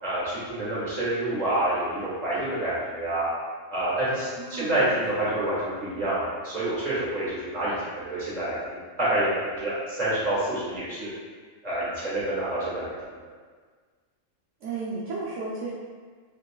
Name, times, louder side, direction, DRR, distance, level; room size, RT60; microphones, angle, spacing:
voice 1, 0.0-3.3 3.7-7.7 8.1-11.1 11.6-13.1, right 1 dB, 35° right, -10 dB, 1.4 m, -28 dB
voice 2, 4.4-5.3 14.6-15.7, right 3 dB, 70° right, -8 dB, 0.9 m, -34 dB
3.9 x 3.2 x 2.2 m, 1.5 s
omnidirectional pair, 1.4 m